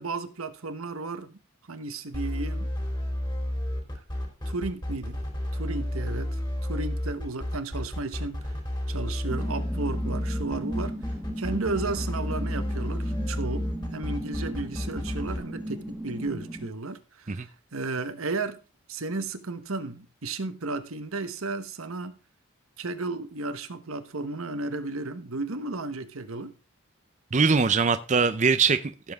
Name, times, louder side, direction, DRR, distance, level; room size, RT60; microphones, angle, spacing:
voice 1, 0.0-1.4 1.7-2.7 4.5-5.2 5.5-8.5 8.9-10.9 11.4-18.6 18.9-22.2 22.8-26.5, right 3 dB, 80° right, 1.2 m, -34 dB
sound 1, 2.1-15.4, left 1 dB, 20° left, 3.0 m, -31 dB
sound 2, 9.3-16.7, equal, 5° right, 1.7 m, -36 dB
voice 2, 27.3-29.1, right 5 dB, 35° right, 0.5 m, -22 dB
15.5 x 7.5 x 3.6 m
head